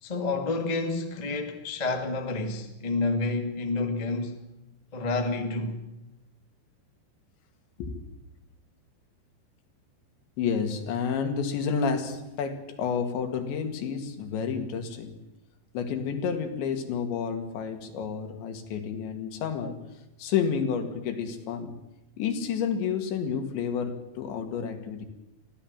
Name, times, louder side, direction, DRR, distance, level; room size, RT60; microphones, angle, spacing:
voice 1, 0.0-4.4 4.9-5.8, left 3 dB, 35° left, 0.6 m, -29 dB
voice 2, 10.4-15.2 15.7-19.8 20.2-21.8 22.2-25.1, left 6 dB, 80° left, 4.4 m, -30 dB
23.5 x 16.5 x 7.4 m
omnidirectional pair, 5.1 m